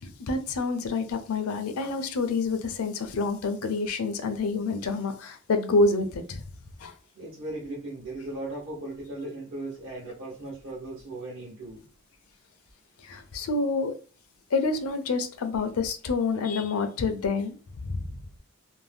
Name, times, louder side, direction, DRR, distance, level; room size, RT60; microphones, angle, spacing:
voice 1, 0.0-6.4 6.8-6.9 13.0-13.9 14.5-17.6 17.8-18.2, left 3 dB, 70° left, 0.5 m, -28 dB
voice 2, 7.1-11.8, right 2 dB, 65° right, 0.9 m, -37 dB
2.6 x 2.1 x 3.3 m
head